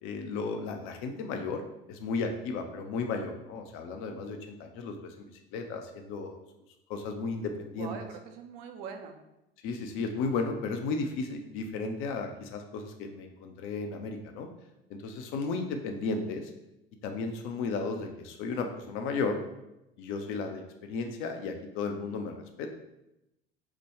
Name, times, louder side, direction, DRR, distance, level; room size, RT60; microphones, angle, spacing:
voice 1, 0.0-1.6 1.9-5.3 5.5-6.4 6.9-7.9 9.6-14.5 14.9-16.5 17.0-19.4 20.0-20.6 20.9-22.7, left 4 dB, 45° left, 5 dB, 0.6 m, -34 dB
voice 2, 7.8-9.2, right 6 dB, 50° right, 6 dB, 0.5 m, -42 dB
4.7 x 2.2 x 3.1 m, 0.89 s
figure-of-eight pair, 70°, 30 cm